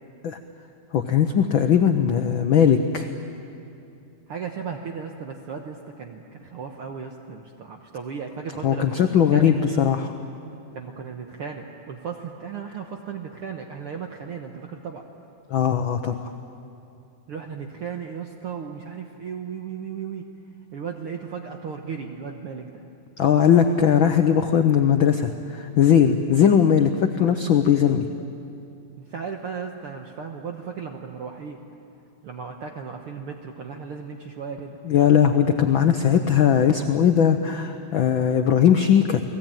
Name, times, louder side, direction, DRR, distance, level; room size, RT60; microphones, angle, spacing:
voice 1, 0.9-3.1 8.6-10.1 15.5-16.3 23.2-28.0 34.8-39.2, left 8 dB, 85° left, 6 dB, 1.0 m, -19 dB
voice 2, 4.3-9.5 10.7-15.0 17.3-20.3 20.7-22.8 29.0-31.6 32.2-34.8, right 6 dB, 60° right, 3 dB, 1.7 m, -35 dB
29.5 x 19.5 x 9.1 m, 2.7 s
omnidirectional pair, 3.5 m